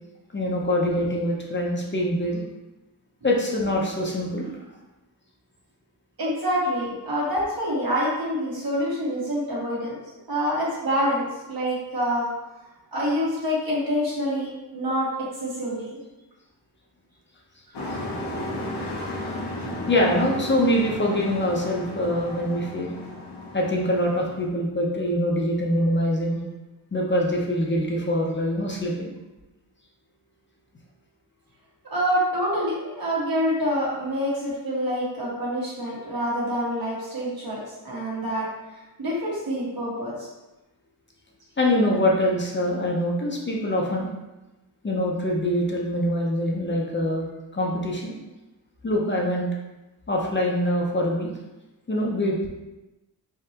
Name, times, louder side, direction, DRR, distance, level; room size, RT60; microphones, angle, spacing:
voice 1, 0.3-2.4 3.2-4.5 19.9-22.9 23.5-26.4 26.9-29.1 41.6-44.1 44.8-48.1 48.8-49.5 50.1-51.3 51.9-52.5, left 1 dB, 30° left, -2 dB, 0.6 m, -24 dB
voice 2, 6.2-10.0 10.3-12.3 12.9-16.0 19.2-19.4 31.9-37.6 37.8-38.5 39.0-40.3, equal, 65° right, -6 dB, 1.5 m, -26 dB
Truck, 17.7-24.5, left 1 dB, 85° left, 0.9 m, -34 dB
3.6 x 3.1 x 2.8 m, 1.0 s
wide cardioid pair, 85°, 40 cm